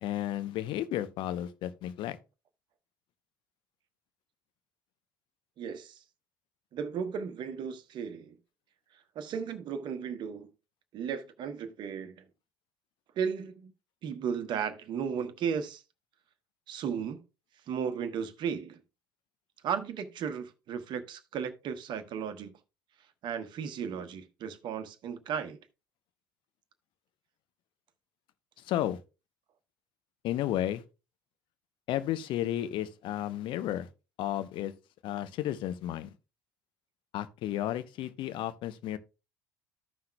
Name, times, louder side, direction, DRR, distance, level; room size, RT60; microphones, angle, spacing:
voice 1, 0.0-2.2 28.6-29.0 30.2-30.8 31.9-33.9 34.2-34.7 35.0-36.1 37.1-39.0, left 12 dB, 50° left, 0.7 m, -33 dB
voice 2, 5.6-6.0 6.7-8.4 9.1-10.5 10.9-12.2 13.2-13.7 14.0-15.8 16.7-17.2 17.7-18.8 19.6-22.5 23.2-25.6, right 7 dB, 45° right, 1.0 m, -35 dB
14.0 x 5.7 x 2.2 m
figure-of-eight pair, 60°, 10 cm